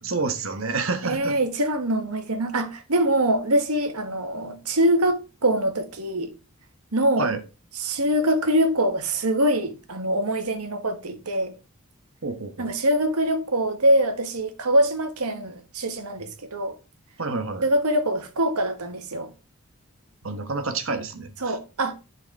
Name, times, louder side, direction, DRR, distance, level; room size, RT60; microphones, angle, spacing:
voice 1, 0.0-1.4 7.2-7.4 12.2-12.7 17.2-17.6 20.2-21.6, right 3 dB, 65° right, 1.3 m, -28 dB
voice 2, 1.0-6.3 6.9-7.3 7.8-11.5 12.6-16.8 17.6-19.3 21.4-21.9, right 1 dB, 90° right, 1.4 m, -24 dB
11.0 x 4.8 x 4.2 m
head